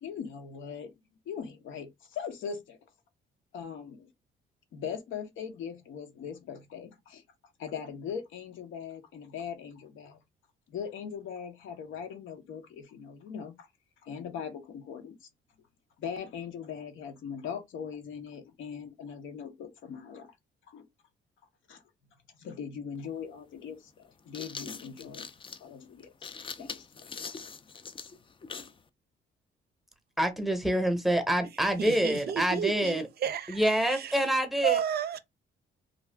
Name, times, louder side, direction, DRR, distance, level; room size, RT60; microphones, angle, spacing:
voice 1, 0.0-0.9 1.3-2.8 3.5-4.1 4.7-7.2 7.6-10.2 10.7-13.7 14.0-15.3 16.0-20.3 20.7-20.9 21.7-21.8 22.4-25.3 25.6-27.2, left 7 dB, 80° left, 0.8 m, -40 dB
sound 1, 22.9-23.0 24.0-28.8, left 5 dB, 25° left, 0.4 m, -42 dB
voice 2, 30.2-33.1 33.5-34.8, right 1 dB, ahead, 0.8 m, -26 dB
voice 3, 31.8-34.2 34.6-35.2, right 9 dB, 55° right, 0.5 m, -32 dB
2.5 x 2.3 x 3.3 m
cardioid pair, 90°, 20 cm